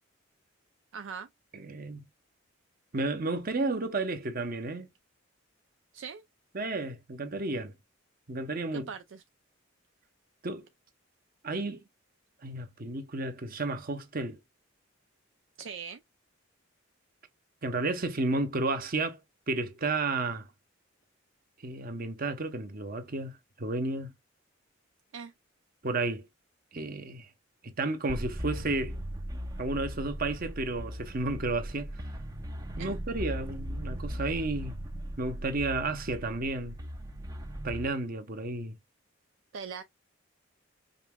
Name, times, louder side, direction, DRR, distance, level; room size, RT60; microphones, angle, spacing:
voice 1, 0.9-1.3 5.9-6.2 8.7-9.2 15.6-16.0 25.1-25.3 32.8-33.0 39.5-39.8, right 6 dB, 65° right, 0.4 m, -41 dB
voice 2, 1.5-2.1 2.9-4.9 6.5-7.7 8.3-8.9 10.4-10.7 11.4-11.8 12.4-14.4 17.6-19.2 19.5-20.5 21.6-24.1 25.8-26.3 26.7-27.3 27.6-29.0 29.6-31.9 32.8-34.8 35.2-36.8 37.6-38.8, right 2 dB, 45° right, 0.9 m, -32 dB
sound 1, 28.1-37.9, equal, 15° right, 0.6 m, -38 dB
5.4 x 3.0 x 2.3 m
head